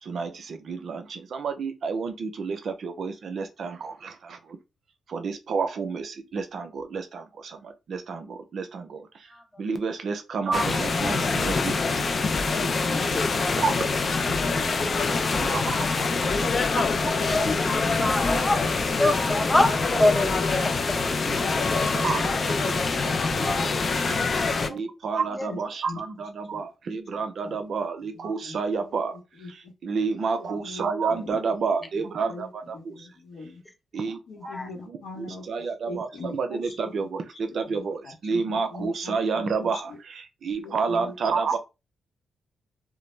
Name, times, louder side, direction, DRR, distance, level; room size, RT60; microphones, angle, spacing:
voice 1, 0.0-4.6 5.1-9.3 9.6-12.6 13.1-14.4 14.9-17.9 19.0-19.1 21.2-24.1 24.7-29.2 29.5-33.1 33.9-34.2 34.9-41.6, right 5 dB, 65° right, 0.5 m, -31 dB
sound 1, 10.5-24.7, left 4 dB, 50° left, 0.3 m, -25 dB
voice 2, 15.0-15.5 17.2-21.7 22.2-22.5 22.9-23.0 23.4-23.8 24.6-24.8 25.4-25.5 34.5-34.7, left 1 dB, 10° left, 0.7 m, -27 dB
voice 3, 27.1-27.6 28.0-29.1 29.4-29.7 30.3-31.4 31.8-33.6 34.3-37.1 37.6-40.0 40.6-41.1, left 3 dB, 80° left, 1.0 m, -42 dB
2.2 x 2.0 x 3.1 m
cardioid pair, 65°, 0 cm